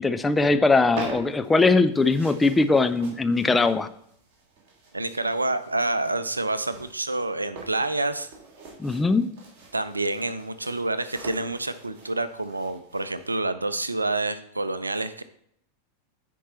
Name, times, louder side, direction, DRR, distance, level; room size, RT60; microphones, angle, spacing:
voice 1, 0.0-3.9 8.8-9.3, left 3 dB, 10° left, 10 dB, 0.5 m, -21 dB
sound 1, 0.6-13.3, right 3 dB, 40° right, 3.1 m, -44 dB
voice 2, 4.9-8.3 9.7-15.2, right 2 dB, 80° right, 13 dB, 0.5 m, -28 dB
10.0 x 4.6 x 4.3 m, 0.72 s
figure-of-eight pair, 90°, 0 cm